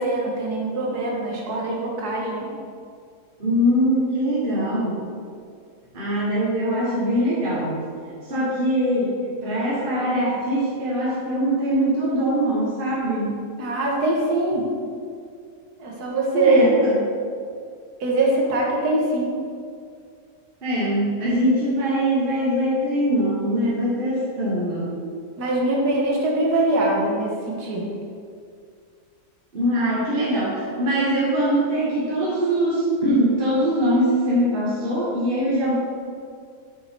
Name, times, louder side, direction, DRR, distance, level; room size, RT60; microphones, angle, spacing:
voice 1, 0.0-2.5 13.6-14.6 15.8-16.7 18.0-19.3 25.4-27.9, right 2 dB, 75° right, -2 dB, 1.9 m, -22 dB
voice 2, 3.4-5.0 5.9-7.9 8.3-13.4 16.3-17.0 20.6-25.0 29.5-35.8, equal, 35° right, -7 dB, 1.6 m, -22 dB
7.2 x 5.8 x 4.5 m, 2.2 s
omnidirectional pair, 1.7 m